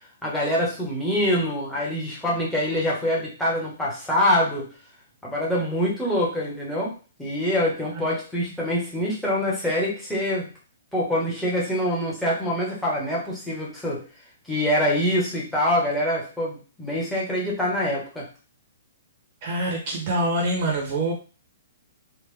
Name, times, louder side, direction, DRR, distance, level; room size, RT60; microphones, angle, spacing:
voice 1, 0.2-4.7 5.2-6.9 7.2-10.5 10.9-14.0 14.5-18.3, left 1 dB, 5° left, -6 dB, 1.3 m, -25 dB
voice 2, 19.4-21.1, right 1 dB, 35° right, -1 dB, 1.1 m, -25 dB
3.6 x 2.5 x 3.3 m, 0.35 s
hypercardioid pair, 155°, 0 cm